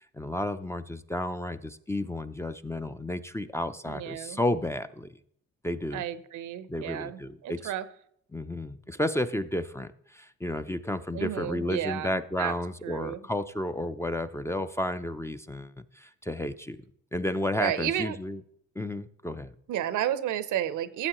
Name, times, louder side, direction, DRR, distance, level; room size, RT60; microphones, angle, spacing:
voice 1, 0.1-5.1 5.6-6.0 6.7-7.7 8.3-16.8 17.1-18.4 18.8-19.5, left 1 dB, 10° left, 10 dB, 0.4 m, -32 dB
voice 2, 3.9-4.4 5.9-7.9 11.1-12.5 12.8-13.2 17.6-18.2 19.7-21.1, right 11 dB, 80° right, 14 dB, 0.7 m, -32 dB
14.0 x 7.4 x 3.0 m, 0.68 s
cardioid pair, 90°, 30 cm